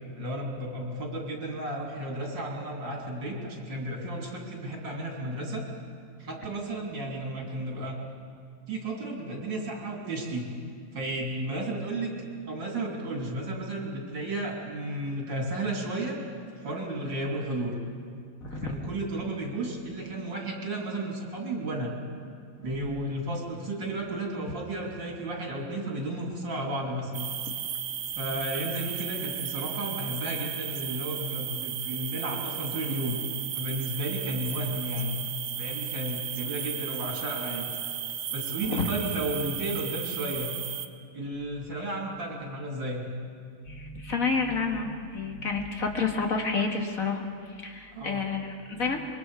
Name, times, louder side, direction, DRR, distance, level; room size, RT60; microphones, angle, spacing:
voice 1, 0.2-5.7 6.2-8.0 8.7-10.5 10.9-12.1 12.5-16.2 16.6-17.7 18.6-21.9 22.6-27.3 28.2-33.2 33.5-35.1 35.5-37.7 38.3-40.5 41.1-43.1 47.9-48.2, right 1 dB, 65° right, -1 dB, 3.6 m, -33 dB
voice 2, 18.4-19.0 22.6-23.1 27.5-27.6 28.1-28.4 38.7-38.9 43.7-49.0, left 4 dB, 45° left, 2 dB, 2.0 m, -30 dB
sound 1, 27.1-40.9, right 9 dB, 90° right, 1.8 m, -35 dB
25.5 x 22.5 x 4.9 m, 2.2 s
omnidirectional pair, 2.2 m